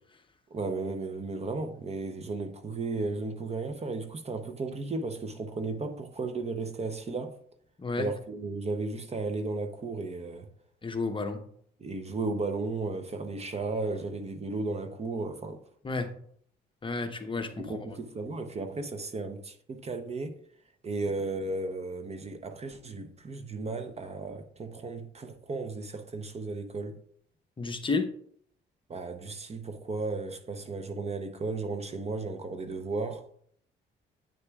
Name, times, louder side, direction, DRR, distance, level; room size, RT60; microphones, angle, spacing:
voice 1, 0.5-7.4 8.0-10.5 11.8-15.6 17.7-20.4 20.8-27.0 28.9-33.3, right 3 dB, 30° right, 0.7 m, -34 dB
voice 2, 10.8-11.4 15.8-16.1 16.8-17.8 27.6-28.1, left 3 dB, 25° left, 0.7 m, -31 dB
8.4 x 6.6 x 2.3 m
cardioid pair, 90°, 20 cm